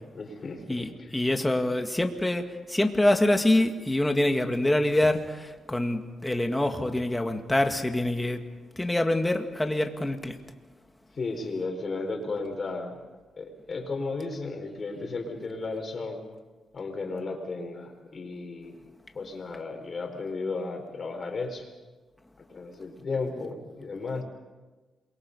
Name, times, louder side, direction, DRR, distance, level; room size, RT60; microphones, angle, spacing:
voice 1, 0.1-1.2 11.2-13.0 13.4-16.2 16.7-18.8 19.1-21.7 22.5-24.2, left 3 dB, 40° left, 4 dB, 4.8 m, -34 dB
voice 2, 0.7-8.4 8.8-10.4, left 1 dB, 10° left, 5 dB, 2.0 m, -25 dB
28.0 x 23.0 x 5.5 m, 1.2 s
cardioid pair, 110°, 0 cm